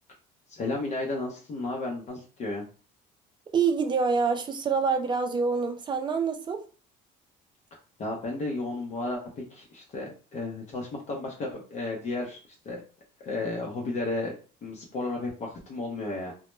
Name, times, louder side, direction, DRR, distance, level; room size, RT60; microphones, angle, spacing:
voice 1, 0.5-2.6 8.0-12.4 12.6-12.8 13.2-16.3, left 2 dB, 40° left, 0.6 m, -33 dB
voice 2, 3.5-6.6, right 5 dB, 25° right, 0.4 m, -26 dB
2.1 x 2.0 x 3.1 m
cardioid pair, 120°, 18 cm